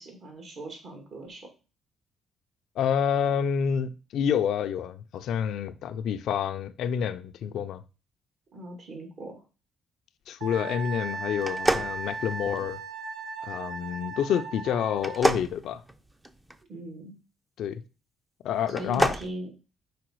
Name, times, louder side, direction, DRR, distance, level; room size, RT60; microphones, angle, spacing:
voice 1, 0.0-1.5 8.5-9.4 16.7-17.1 18.7-19.5, right 1 dB, 60° right, 2.4 m, -39 dB
voice 2, 2.8-7.8 10.3-12.8 13.4-15.8 17.6-17.8 18.4-19.1, left 8 dB, 75° left, 0.5 m, -28 dB
Wind instrument woodwind instrument, 10.4-15.3, right 4 dB, 75° right, 1.2 m, -37 dB
sound 1, 11.4-12.8 15.0-16.6 18.6-19.3, right 1 dB, 15° right, 0.6 m, -28 dB
5.0 x 4.6 x 4.6 m
cardioid pair, 90°, 0 cm